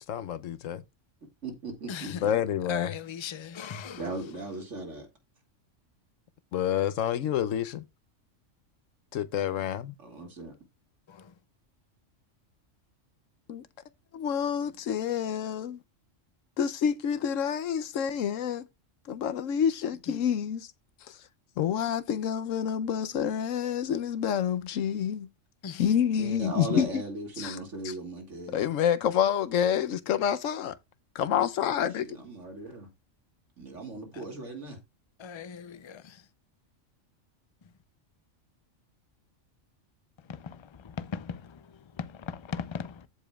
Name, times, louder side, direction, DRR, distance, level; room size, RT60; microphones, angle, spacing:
voice 1, 0.1-0.8 2.2-2.9 6.5-7.8 9.1-9.9 13.5-13.6 14.1-15.8 16.6-18.6 19.1-20.7 21.6-25.3 25.8-26.9 27.4-27.6 28.5-30.7 31.2-32.1, left 9 dB, 85° left, 1.1 m, -28 dB
voice 2, 1.4-2.3 3.9-5.1 10.0-10.5 26.2-28.7 31.9-32.9 33.6-34.8, right 2 dB, 70° right, 2.7 m, -38 dB
voice 3, 2.7-4.0 25.6-25.8 35.2-36.0 41.1-41.4 42.3-42.9, left 7 dB, 50° left, 0.3 m, -37 dB
14.5 x 5.0 x 2.3 m
omnidirectional pair, 1.3 m